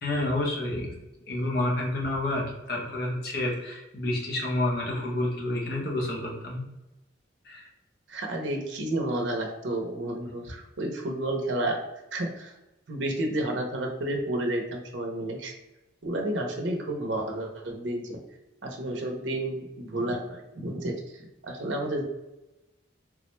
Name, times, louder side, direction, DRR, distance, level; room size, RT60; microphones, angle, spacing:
voice 1, 0.0-0.9 1.3-6.6 7.4-7.6, left 1 dB, 55° left, -2 dB, 0.8 m, -29 dB
voice 2, 8.1-11.8 12.1-12.6 12.9-15.5 16.0-18.2 18.6-21.0 21.4-22.0, right 1 dB, 70° right, 2 dB, 0.6 m, -31 dB
3.6 x 2.1 x 3.0 m, 0.97 s
head